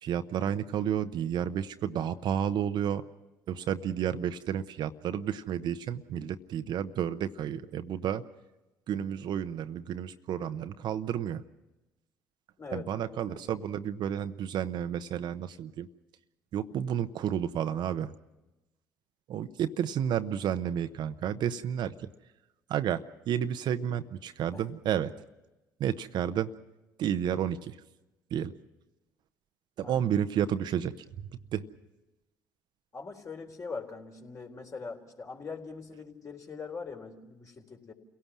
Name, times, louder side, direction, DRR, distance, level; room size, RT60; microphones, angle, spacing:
voice 1, 0.0-3.0 3.5-8.2 8.9-11.4 12.7-15.9 16.5-18.1 19.3-22.1 22.7-25.1 25.8-26.5 27.0-27.8 28.3-28.5 29.8-31.6, right 9 dB, 60° right, 10 dB, 0.9 m, -31 dB
voice 2, 12.6-13.5 24.5-24.6 29.8-30.1 32.9-37.9, left 4 dB, 40° left, 2 dB, 3.9 m, -42 dB
29.0 x 17.5 x 6.1 m, 1.0 s
hypercardioid pair, 55°, 9 cm